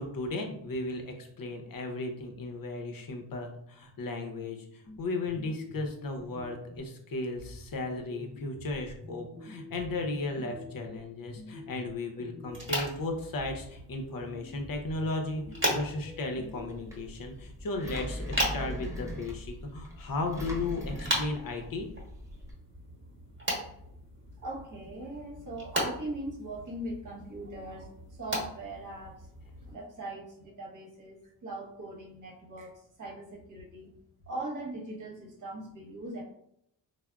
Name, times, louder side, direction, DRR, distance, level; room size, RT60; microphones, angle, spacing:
voice 1, 0.0-15.4 15.7-21.9, left 2 dB, 50° left, 3 dB, 0.7 m, -35 dB
sound 1, 4.8-7.0 7.4-13.0 13.4-16.9, left 2 dB, 20° left, 0.3 m, -47 dB
sound 2, 12.5-29.7, right 1 dB, 25° right, 1.2 m, -38 dB
Engine, 16.4-22.5, left 1 dB, 5° right, 0.7 m, -40 dB
voice 2, 24.4-27.9 28.2-29.3 29.7-31.2 31.4-32.7 33.0-33.9 34.3-36.2, right 1 dB, 45° right, -2 dB, 1.1 m, -40 dB
3.4 x 2.1 x 2.3 m, 0.74 s
cardioid pair, 70°, 44 cm